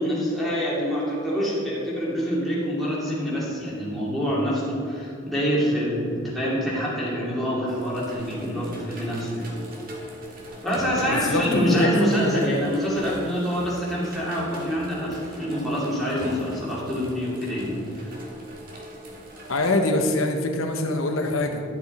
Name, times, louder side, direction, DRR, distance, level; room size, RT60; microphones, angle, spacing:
voice 1, 0.0-9.5 10.6-18.1, equal, ahead, -8 dB, 2.4 m, -26 dB
sound 1, 7.7-19.8, equal, 45° right, 1.6 m, -40 dB
voice 2, 11.1-12.4 19.5-21.6, left 2 dB, 85° left, 3 dB, 0.9 m, -24 dB
11.0 x 6.9 x 4.2 m, 2.6 s
head